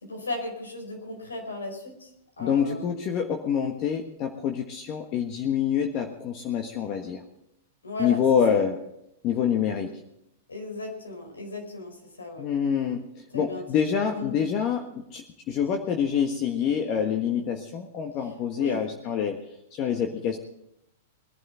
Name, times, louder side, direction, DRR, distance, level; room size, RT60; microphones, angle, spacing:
voice 1, 0.0-3.0 7.8-8.2 8.5-8.7 9.8-9.9 10.5-12.4 13.3-13.7 14.0-14.4 18.6-18.8, left 2 dB, 85° left, 2 dB, 4.7 m, -36 dB
voice 2, 2.4-7.2 8.0-8.8 9.2-10.0 12.4-14.9 15.1-19.4 19.7-20.4, left 8 dB, 40° left, 3 dB, 1.4 m, -26 dB
21.0 x 11.0 x 4.5 m, 0.80 s
hypercardioid pair, 105°, 0 cm